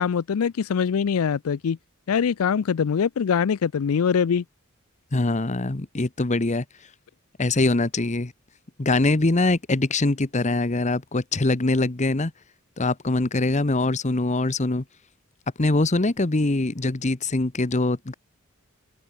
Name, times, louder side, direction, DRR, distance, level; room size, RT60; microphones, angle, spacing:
voice 1, 0.0-1.8 2.1-4.4, left 7 dB, 75° left, 0.4 m, -23 dB
voice 2, 5.1-6.6 7.4-8.3 8.8-12.3 12.8-14.8 15.6-18.1, left 2 dB, 35° left, 1.0 m, -23 dB
open air
head